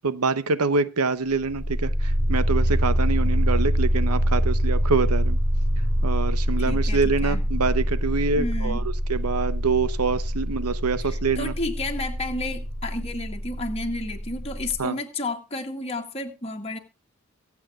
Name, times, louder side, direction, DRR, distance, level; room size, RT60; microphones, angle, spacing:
voice 1, 0.0-5.4 6.0-8.8 9.1-11.5 14.8-15.0, right 4 dB, 90° right, 0.8 m, -25 dB
sound 1, 1.4-14.8, equal, 70° right, 3.8 m, -25 dB
voice 2, 6.6-7.4 8.4-8.8 11.0-16.8, left 2 dB, 25° left, 1.8 m, -31 dB
24.0 x 8.4 x 2.4 m
head